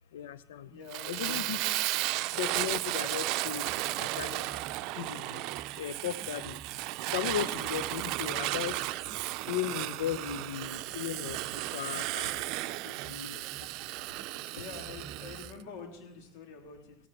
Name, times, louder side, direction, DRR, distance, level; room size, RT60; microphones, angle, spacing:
voice 1, 0.1-0.7 1.1-1.6 2.3-4.6 5.0-5.4 5.8-6.6 7.1-8.9 9.5-11.4 11.7-12.5 12.8-13.4, left 10 dB, 90° left, 15 dB, 0.8 m, -36 dB
voice 2, 0.7-1.6 7.5-7.6 14.5-17.0, left 5 dB, 70° left, 2 dB, 3.6 m, -46 dB
Fire, 0.9-15.5, right 18 dB, 65° right, 0.5 m, -34 dB
sound 1, 3.6-15.6, right 7 dB, 35° right, 1.4 m, -52 dB
17.0 x 14.5 x 4.5 m, 0.79 s
hypercardioid pair, 85°, 0 cm